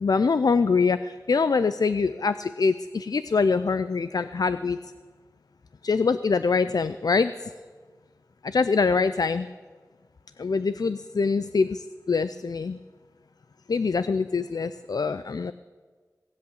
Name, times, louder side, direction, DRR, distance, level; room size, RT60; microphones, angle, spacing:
voice 1, 0.0-4.8 5.8-7.3 8.4-9.5 10.4-12.8 13.7-15.5, left 4 dB, 75° left, 13 dB, 0.4 m, -24 dB
18.0 x 7.9 x 8.4 m, 1.5 s
wide cardioid pair, 50°, 7 cm